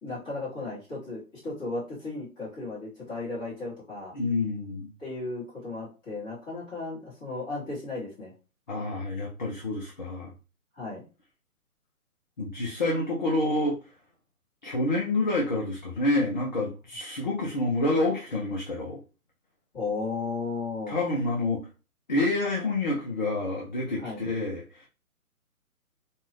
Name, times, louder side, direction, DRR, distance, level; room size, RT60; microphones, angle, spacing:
voice 1, 0.0-4.1 5.0-8.3 10.8-11.0 19.7-21.0 24.0-24.2, left 3 dB, 10° left, -9 dB, 1.1 m, -35 dB
voice 2, 4.1-4.9 8.7-10.3 12.4-13.8 14.6-19.0 20.9-21.7 22.1-24.9, left 2 dB, 30° left, -3 dB, 0.5 m, -28 dB
2.6 x 2.3 x 3.2 m, 0.32 s
figure-of-eight pair, 140°, 44 cm